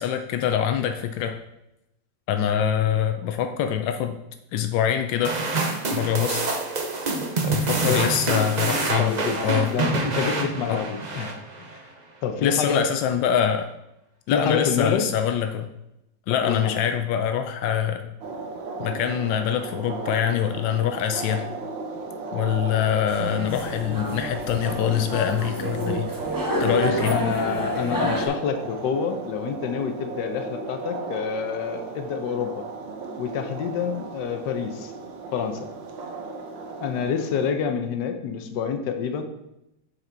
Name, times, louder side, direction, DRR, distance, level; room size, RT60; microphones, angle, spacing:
voice 1, 0.0-1.4 2.3-4.2 4.5-5.4 5.9-6.5 7.4-9.2 9.4-9.7 10.7-10.8 12.4-13.7 14.3-15.7 16.3-18.1 18.8-21.4 22.3-26.1 26.6-27.2, left 9 dB, 90° left, 7 dB, 1.3 m, -24 dB
sound 1, 5.2-11.8, right 3 dB, 65° right, 0.4 m, -26 dB
voice 2, 9.0-9.4 9.7-11.4 12.2-12.8 14.3-15.0 16.3-16.8 26.8-32.7 33.2-34.9 35.3-35.7 36.8-39.2, left 6 dB, 70° left, 6 dB, 1.4 m, -27 dB
sound 2, 18.2-37.5, right 3 dB, 90° right, 1.6 m, -36 dB
sound 3, 23.1-28.3, equal, 15° right, 0.9 m, -29 dB
7.1 x 5.9 x 3.9 m, 0.86 s
omnidirectional pair, 2.0 m